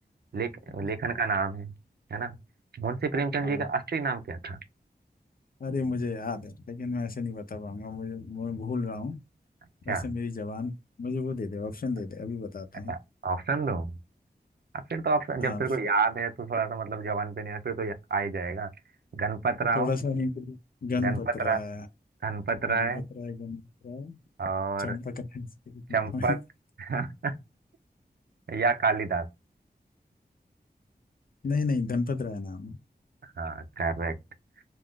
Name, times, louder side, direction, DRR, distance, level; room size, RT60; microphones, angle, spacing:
voice 1, 0.3-1.7 2.1-2.4 2.7-4.6 9.9-10.1 12.9-13.0 13.2-13.9 14.9-18.7 19.1-19.9 21.0-21.6 22.2-23.1 24.4-25.0 25.9-26.4 26.8-27.3 28.5-29.3 33.2-34.1, right 4 dB, 70° right, 0.6 m, -29 dB
voice 2, 3.1-3.7 5.6-9.2 9.8-10.7 11.0-12.9 15.4-15.6 19.7-21.9 22.6-24.2 24.8-26.4 31.4-32.8, left 4 dB, 55° left, 0.5 m, -33 dB
2.4 x 2.4 x 3.6 m
wide cardioid pair, 80°, 17 cm